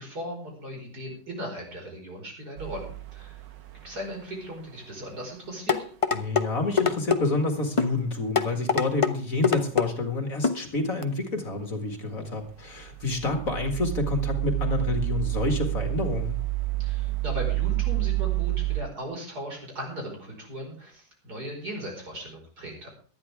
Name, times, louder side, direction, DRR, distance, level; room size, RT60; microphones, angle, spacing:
voice 1, 0.0-3.4 3.8-5.8 16.8-22.9, equal, 55° right, 0 dB, 5.7 m, -37 dB
sound 1, 2.6-4.1 12.7-18.8, right 21 dB, 75° right, 1.7 m, -29 dB
sound 2, 5.7-6.5 6.8-7.2 7.8-7.9 8.3-9.1 9.4-9.9 10.4-10.6 11.0-11.1, left 5 dB, 25° left, 0.7 m, -23 dB
voice 2, 6.1-16.4, left 3 dB, 50° left, 5 dB, 2.3 m, -28 dB
19.0 x 12.0 x 3.6 m, 0.41 s
omnidirectional pair, 2.0 m